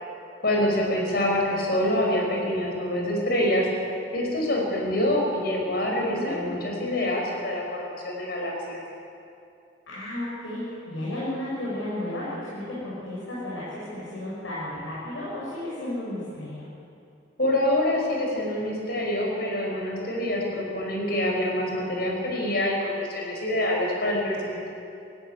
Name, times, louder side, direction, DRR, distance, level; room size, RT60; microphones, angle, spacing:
voice 1, 0.4-3.7 4.1-8.8 17.4-24.7, left 1 dB, 55° left, -1 dB, 5.5 m, -26 dB
voice 2, 6.0-6.7 9.9-16.6, left 1 dB, 90° left, -8 dB, 6.4 m, -33 dB
18.0 x 15.0 x 9.7 m, 2.6 s
head